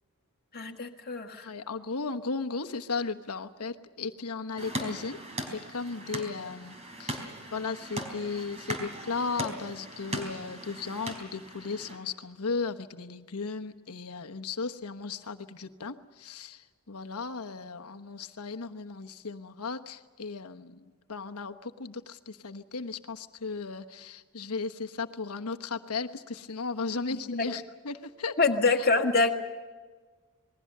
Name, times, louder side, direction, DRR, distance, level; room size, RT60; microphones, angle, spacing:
voice 1, 0.5-1.5 27.4-27.5 28.4-29.3, left 3 dB, 45° left, 4 dB, 1.7 m, -25 dB
voice 2, 1.4-5.2 5.5-16.6 16.9-20.8 21.1-28.4, left 4 dB, 85° left, 6 dB, 1.1 m, -36 dB
sound 1, 4.6-12.0, right 1 dB, 30° right, 3.9 m, -39 dB
27.0 x 20.5 x 6.6 m, 1.4 s
head